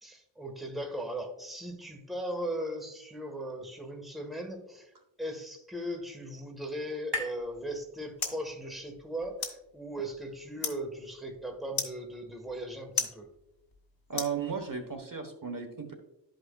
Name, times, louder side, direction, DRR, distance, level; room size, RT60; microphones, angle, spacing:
voice 1, 0.0-4.9 5.2-13.3, right 1 dB, ahead, 3 dB, 1.2 m, -38 dB
sound 1, 4.8-8.5, left 2 dB, 70° right, 1.2 m, -43 dB
sound 2, 7.4-15.0, left 5 dB, 90° left, 1.4 m, -40 dB
voice 2, 14.1-15.9, right 6 dB, 45° right, 5 dB, 1.0 m, -35 dB
12.5 x 5.1 x 2.2 m, 0.87 s
wide cardioid pair, 90°, 45 cm